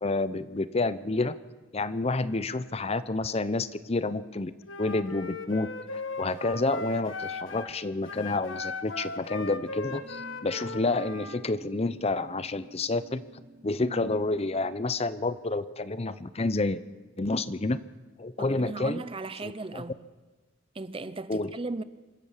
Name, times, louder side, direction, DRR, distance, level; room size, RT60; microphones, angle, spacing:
voice 1, 0.0-1.3 1.7-4.5 4.8-13.2 13.6-16.8 17.2-17.8 18.2-19.0 19.4-19.8 21.3-21.5, left 2 dB, 30° left, 0.7 m, -29 dB
Wind instrument woodwind instrument, 4.6-7.7 8.0-11.4, left 3 dB, 80° left, 1.7 m, -38 dB
sound 1, 9.8-18.0 18.4-18.6, right 1 dB, 55° right, 3.2 m, -50 dB
voice 2, 18.4-20.1 20.7-21.8, right 3 dB, 30° right, 0.7 m, -36 dB
25.5 x 14.0 x 7.4 m
head